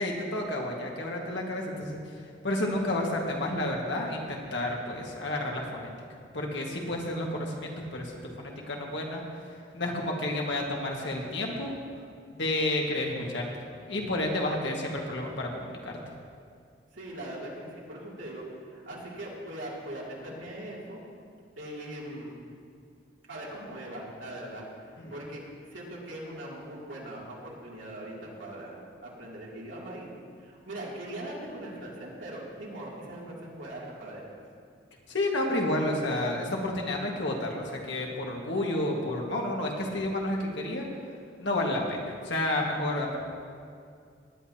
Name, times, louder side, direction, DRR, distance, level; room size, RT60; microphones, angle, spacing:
voice 1, 0.0-2.0 2.4-5.9 6.3-9.2 9.7-11.7 12.3-13.6 13.9-16.0 25.0-25.2 35.1-40.9 41.4-43.2, left 1 dB, 70° left, -1 dB, 1.8 m, -30 dB
voice 2, 16.9-21.0 21.6-22.3 23.3-25.4 25.7-28.7 29.0-30.1 30.4-34.2, right 1 dB, 80° right, -5 dB, 2.8 m, -40 dB
18.5 x 10.5 x 2.9 m, 2.2 s
head